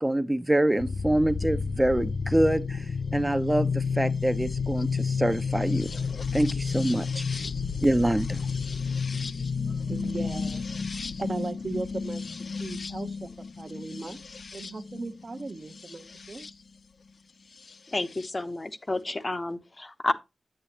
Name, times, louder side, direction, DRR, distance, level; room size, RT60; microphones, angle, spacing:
voice 1, 0.0-5.9 6.3-7.2 7.8-8.4, right 1 dB, 15° right, 0.6 m, -25 dB
sound 1, 0.8-16.5 17.7-18.3, left 5 dB, 65° left, 0.4 m, -31 dB
voice 2, 9.7-12.2 12.6-13.3 13.6-14.2 14.5-16.5, right 3 dB, 50° right, 0.8 m, -37 dB
voice 3, 17.9-20.1, left 2 dB, 40° left, 0.9 m, -30 dB
8.6 x 7.9 x 2.9 m
cardioid pair, 65°, 0 cm